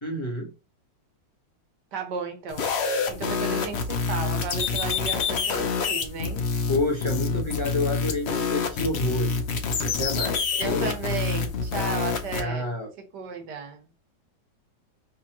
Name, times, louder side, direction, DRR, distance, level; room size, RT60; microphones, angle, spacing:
voice 1, 0.0-0.5 6.7-10.9 12.4-12.9, left 2 dB, 20° left, 1.0 m, -29 dB
voice 2, 1.9-2.7 3.1-6.4 10.6-12.7 13.1-13.9, right 5 dB, 70° right, 1.5 m, -34 dB
sound 1, 2.5-12.4, left 5 dB, 55° left, 0.7 m, -27 dB
5.2 x 3.0 x 3.0 m
omnidirectional pair, 2.0 m